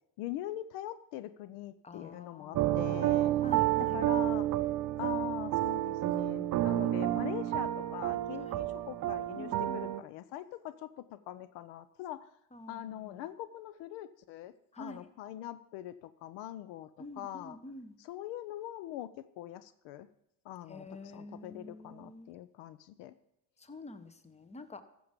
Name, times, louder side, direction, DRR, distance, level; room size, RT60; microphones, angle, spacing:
voice 1, 0.2-4.5 5.0-12.3 12.7-17.6 18.0-20.1 20.4-23.1, left 13 dB, 70° left, 14 dB, 0.6 m, -43 dB
voice 2, 1.8-4.0 8.5-8.7 9.4-9.9 12.5-13.2 14.7-15.0 17.0-18.0 20.7-22.3 23.6-24.8, left 1 dB, 15° left, 12 dB, 1.0 m, -48 dB
sound 1, 2.5-10.0, right 14 dB, 45° right, 0.6 m, -30 dB
13.5 x 7.0 x 5.2 m, 0.76 s
hypercardioid pair, 75°, 43 cm